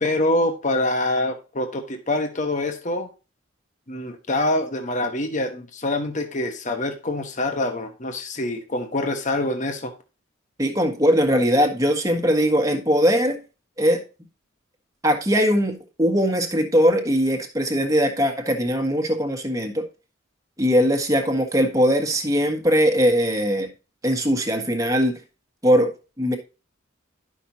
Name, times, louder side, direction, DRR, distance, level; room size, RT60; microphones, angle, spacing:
voice 1, 0.0-3.1 3.9-9.9, left 2 dB, 40° left, 1.2 m, -25 dB
voice 2, 10.6-13.4 13.8-14.0 15.0-19.8 20.6-23.7 24.0-25.2 25.6-26.4, equal, 15° right, 1.6 m, -20 dB
11.0 x 6.1 x 2.8 m
head